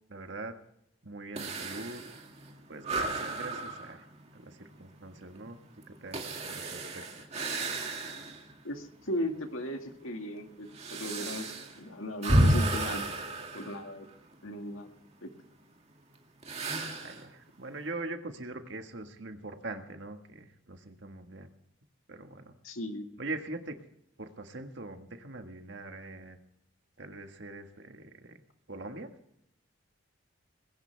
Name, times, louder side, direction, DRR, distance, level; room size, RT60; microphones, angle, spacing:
voice 1, 0.1-0.5 1.0-2.0 2.7-4.1 4.3-5.6 5.9-7.0 17.0-21.5 22.1-22.5 23.2-23.8 24.2-26.4 27.0-28.3 28.7-29.1, right 2 dB, 60° right, 6 dB, 1.7 m, -42 dB
sound 1, 1.4-8.5 9.0-9.1 9.8-14.4 16.4-17.3, right 1 dB, 30° right, 2.3 m, -32 dB
voice 2, 8.6-13.1 13.5-14.1 14.4-14.9 15.2-15.3 22.6-23.1, left 1 dB, 90° left, 5 dB, 2.1 m, -36 dB
20.0 x 17.0 x 3.5 m, 0.77 s
head